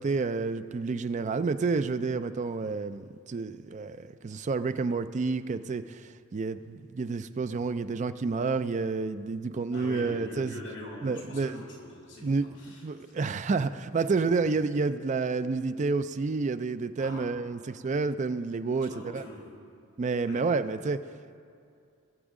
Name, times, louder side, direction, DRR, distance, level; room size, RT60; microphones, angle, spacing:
voice 1, 0.0-10.5 11.0-11.6 12.2-19.2 20.0-21.0, right 4 dB, 35° right, 12 dB, 0.3 m, -29 dB
voice 2, 9.7-13.1 14.0-14.1 17.0-17.3 18.8-19.4 20.2-20.4, left 1 dB, 60° left, -3 dB, 2.9 m, -43 dB
20.0 x 7.1 x 3.7 m, 2.4 s
head